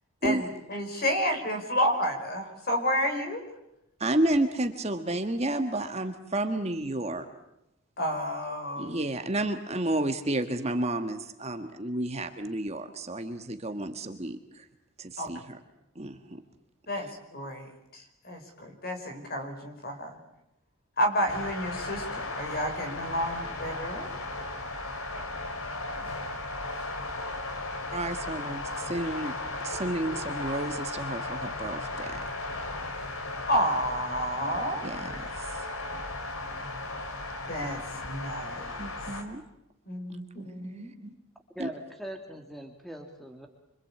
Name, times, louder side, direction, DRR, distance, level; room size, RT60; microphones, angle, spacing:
voice 1, 0.2-3.4 8.0-9.0 15.2-15.3 16.9-20.2 21.0-24.1 33.5-34.8 37.5-38.9 39.9-40.9, equal, 45° left, 4 dB, 5.0 m, -30 dB
voice 2, 4.0-7.2 8.8-14.7 15.0-15.6 15.9-16.4 27.9-29.3 29.6-32.2 34.8-35.6 38.8-39.4 40.1-40.2 40.6-40.7 41.0-41.1 41.6-41.7, right 1 dB, 30° right, 7 dB, 1.6 m, -31 dB
sound 1, 21.3-39.2, left 2 dB, 80° left, 3.3 m, -36 dB
voice 3, 41.5-43.5, equal, ahead, 4 dB, 2.3 m, -41 dB
26.0 x 25.5 x 8.6 m, 0.86 s
head